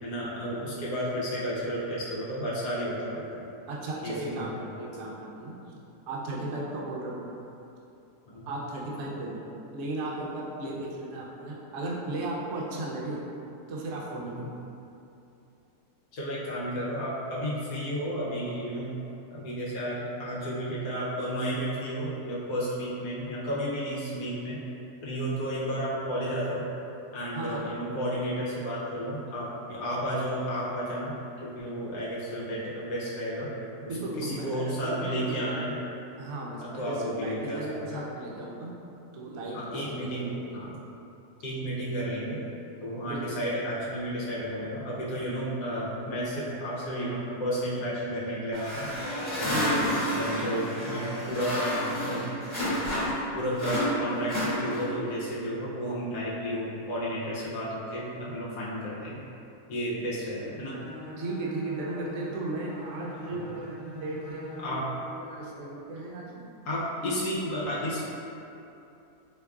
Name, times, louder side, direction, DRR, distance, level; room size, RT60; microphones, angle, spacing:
voice 1, 0.0-3.4 4.0-4.5 8.3-8.5 14.2-14.5 16.1-18.9 19.3-24.6 25.0-26.6 27.1-31.1 31.4-33.5 33.8-35.7 36.7-37.6 37.9-38.1 39.5-40.7 41.4-42.4 42.8-48.9 49.4-49.8 50.1-53.0 53.3-59.2 59.7-60.8 63.3-63.5 64.6-64.9 66.6-68.0, equal, 80° left, -8 dB, 1.2 m, -32 dB
voice 2, 3.7-4.5 4.8-5.5 6.1-7.3 8.5-9.4 9.7-13.2 13.7-14.5 27.3-27.7 33.9-35.6 36.2-38.7 39.1-40.7 43.0-43.2 49.4-50.2 61.2-63.7 63.9-64.6 65.2-66.3, right 2 dB, 70° right, -4 dB, 0.8 m, -35 dB
sound 1, 48.5-53.3 53.6-55.0, equal, 35° left, 1.0 m, -30 dB
Bowed string instrument, 60.7-64.9, equal, 50° left, 1.3 m, -42 dB
3.5 x 3.0 x 2.3 m, 2.8 s
omnidirectional pair, 1.7 m